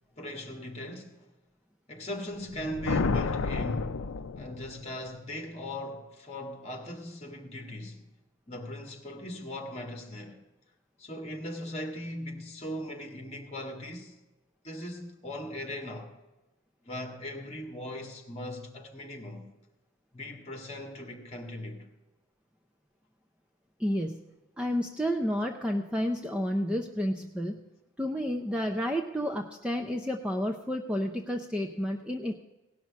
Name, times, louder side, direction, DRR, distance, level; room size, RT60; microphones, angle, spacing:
voice 1, 0.2-1.3 1.9-4.0 4.3-8.1 8.5-10.4 11.0-14.1 14.6-16.1 16.8-19.5 20.1-21.9, left 1 dB, 30° left, 1.7 m, -39 dB
sound 1, 2.4-4.9, left 4 dB, 70° left, 0.5 m, -31 dB
voice 2, 23.8-24.2 24.6-27.6 28.0-32.4, equal, 5° right, 0.5 m, -30 dB
17.5 x 6.1 x 7.2 m
head